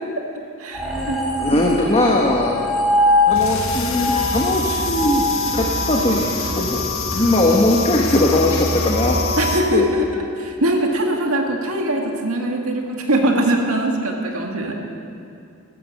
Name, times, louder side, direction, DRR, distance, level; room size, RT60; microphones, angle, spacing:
voice 1, 0.6-1.6 9.4-14.8, right 1 dB, 80° right, 1 dB, 2.1 m, -22 dB
sound 1, 0.7-6.2, left 2 dB, ahead, 3.4 m, -22 dB
voice 2, 1.4-2.6 3.3-5.2 5.5-6.3 6.6-6.8 7.1-9.2 9.7-9.9, left 1 dB, 25° left, -1 dB, 1.3 m, -19 dB
sound 2, 3.3-9.6, left 2 dB, 75° left, 1.8 m, -25 dB
16.0 x 13.5 x 6.6 m, 2.6 s
head